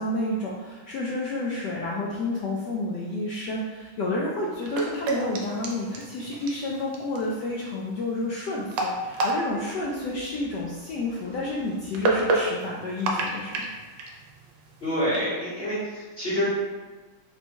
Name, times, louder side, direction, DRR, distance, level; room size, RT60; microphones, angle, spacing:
voice 1, 0.0-13.7, left 2 dB, 75° left, -4 dB, 1.0 m, -30 dB
sound 1, 4.5-15.2, right 2 dB, 70° right, 1.2 m, -31 dB
voice 2, 14.8-16.5, equal, 40° left, -10 dB, 1.0 m, -27 dB
4.0 x 2.2 x 4.4 m, 1.3 s
omnidirectional pair, 2.2 m